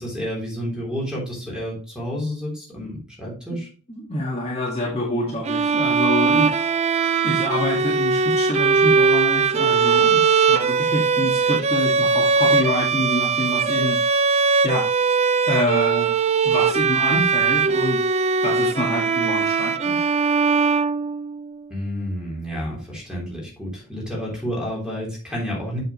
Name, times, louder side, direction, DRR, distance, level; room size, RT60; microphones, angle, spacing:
voice 1, 0.0-3.7 21.7-25.8, equal, 5° right, -3 dB, 3.6 m, -30 dB
voice 2, 3.9-6.7 7.2-14.0 14.6-14.9 15.5-16.1 16.4-18.0 18.4-20.0, left 1 dB, 30° left, -3 dB, 1.9 m, -26 dB
Bowed string instrument, 5.4-21.5, right 5 dB, 30° right, 0.4 m, -20 dB
7.9 x 6.5 x 3.1 m, 0.38 s
head